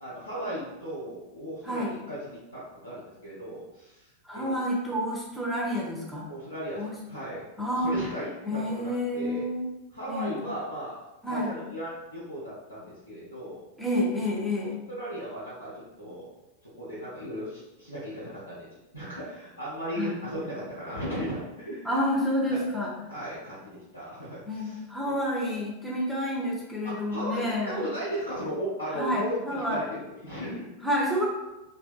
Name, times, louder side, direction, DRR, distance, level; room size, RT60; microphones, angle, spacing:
voice 1, 0.0-4.5 6.3-9.4 9.9-11.0 11.2-13.6 14.9-16.3 16.7-18.7 18.9-21.9 22.5-22.6 23.1-25.1 26.8-29.8 30.2-30.7, equal, 80° left, -10 dB, 0.6 m, -36 dB
voice 2, 1.6-2.0 4.2-6.3 6.7-7.0 7.6-7.9 8.4-9.6 10.1-10.3 11.2-11.6 13.8-14.8 20.0-20.1 21.8-22.9 24.5-27.9 28.9-29.9 30.8-31.3, left 1 dB, ahead, -4 dB, 0.5 m, -29 dB
2.6 x 2.1 x 2.2 m, 1.0 s
figure-of-eight pair, 90°, 0 cm